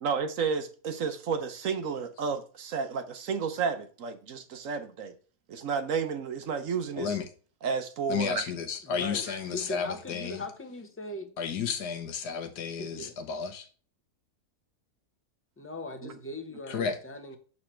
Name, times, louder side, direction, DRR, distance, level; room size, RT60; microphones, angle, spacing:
voice 1, 0.0-5.1 5.5-7.2 7.6-8.5 9.3-9.4 16.0-16.1, right 5 dB, 60° right, 1.1 m, -32 dB
voice 2, 8.1-10.4 11.4-13.7 16.7-17.0, left 6 dB, 85° left, 1.6 m, -32 dB
voice 3, 8.8-9.3 9.5-11.4 12.8-13.1 15.6-17.4, left 2 dB, 10° left, 0.7 m, -39 dB
6.6 x 4.1 x 4.3 m
omnidirectional pair, 1.7 m